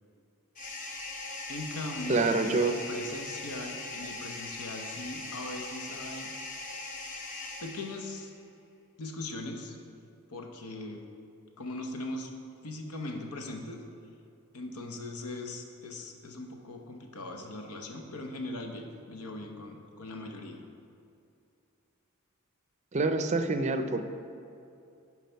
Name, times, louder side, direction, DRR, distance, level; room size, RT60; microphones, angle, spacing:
sound 1, 0.5-8.3, left 2 dB, 35° left, 0.9 m, -40 dB
voice 1, 1.5-6.3 7.6-8.3 9.0-9.8 10.3-11.0 11.6-12.3 12.6-13.8 14.5-20.6, left 2 dB, 85° left, 3 dB, 1.0 m, -40 dB
voice 2, 2.1-2.8 22.9-24.0, right 3 dB, 30° right, 8 dB, 0.5 m, -26 dB
10.5 x 4.8 x 4.5 m, 2.6 s
head